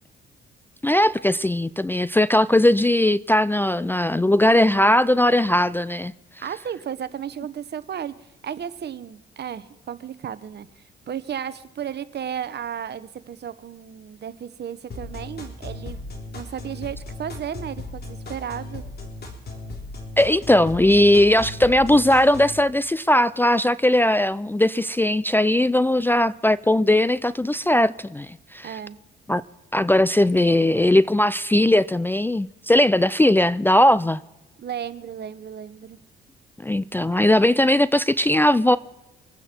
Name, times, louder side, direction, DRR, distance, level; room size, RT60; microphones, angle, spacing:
voice 1, 0.8-6.1 20.2-28.7 29.3-29.4 29.7-34.2 36.6-38.8, left 1 dB, 10° left, 0.4 m, -19 dB
voice 2, 6.4-16.0 16.3-18.8 28.6-29.0 34.6-36.0, right 9 dB, 50° right, 1.0 m, -34 dB
sound 1, 14.9-22.6, left 2 dB, 50° left, 3.6 m, -36 dB
25.0 x 9.0 x 4.5 m
supercardioid pair, 65°, 21 cm